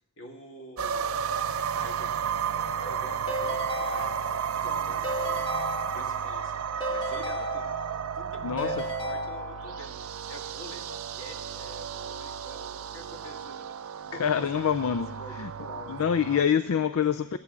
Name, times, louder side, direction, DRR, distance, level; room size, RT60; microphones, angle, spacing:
voice 1, 0.2-1.3 1.7-2.1 2.8-10.0 10.3-13.8 14.0-14.8 15.2-16.0 17.0-17.1, left 1 dB, 60° left, 3 dB, 2.0 m, -46 dB
sound 1, 0.8-16.4, right 7 dB, 70° right, 0.5 m, -33 dB
Keyboard (musical) / Ringtone, 3.3-4.6 5.0-6.4 6.8-8.2 8.6-9.9, equal, 25° left, 1.5 m, -34 dB
voice 2, 8.4-8.7 14.1-15.5 15.9-17.4, left 8 dB, 80° left, 12 dB, 0.4 m, -26 dB
15.0 x 8.6 x 8.3 m, 1.0 s
head